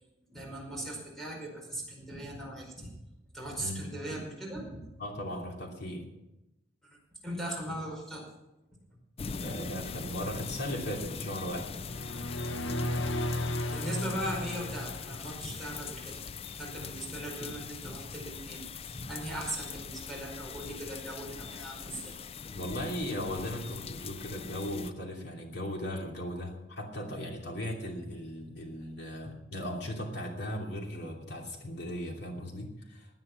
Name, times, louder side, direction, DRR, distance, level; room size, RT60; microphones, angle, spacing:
voice 1, 0.3-2.9 3.3-4.8 7.2-8.2 13.7-16.2 16.5-22.2, right 1 dB, ahead, -2 dB, 4.9 m, -39 dB
voice 2, 5.0-6.1 9.4-11.7 16.8-16.9 22.5-33.1, equal, 60° left, 1 dB, 2.9 m, -37 dB
sound 1, 9.2-24.9, left 6 dB, 30° left, 0.4 m, -42 dB
sound 2, 11.7-15.6, left 1 dB, 80° left, 0.9 m, -34 dB
16.5 x 9.6 x 5.9 m, 0.94 s
head